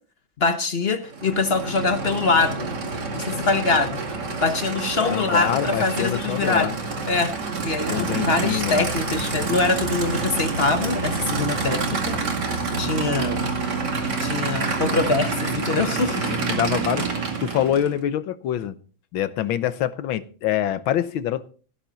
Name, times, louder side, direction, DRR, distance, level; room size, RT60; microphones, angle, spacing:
voice 1, 0.4-2.7 3.1-4.0 4.4-6.7 7.1-7.3 7.6-12.2 12.8-13.4 14.2-16.3, left 3 dB, 40° left, 1.0 m, -23 dB
Aircraft / Idling, 1.0-18.0, right 3 dB, 60° right, 3.0 m, -27 dB
voice 2, 5.0-6.7 7.9-8.9 16.1-18.8 19.1-21.5, left 11 dB, 90° left, 1.7 m, -25 dB
17.0 x 10.5 x 4.0 m
omnidirectional pair, 2.1 m